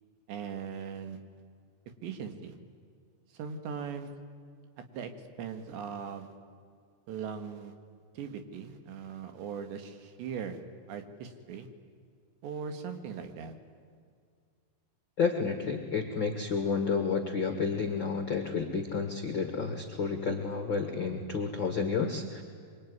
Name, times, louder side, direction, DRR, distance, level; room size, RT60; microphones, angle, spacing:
voice 1, 0.3-1.2 2.0-2.6 3.3-4.1 4.9-5.1 5.4-6.3 7.1-7.7 8.1-10.6 10.9-11.7 12.4-13.5, right 7 dB, 80° right, 7 dB, 4.0 m, -39 dB
voice 2, 15.2-22.4, left 5 dB, 60° left, 5 dB, 1.2 m, -30 dB
24.5 x 24.0 x 9.6 m, 2.2 s
omnidirectional pair, 4.9 m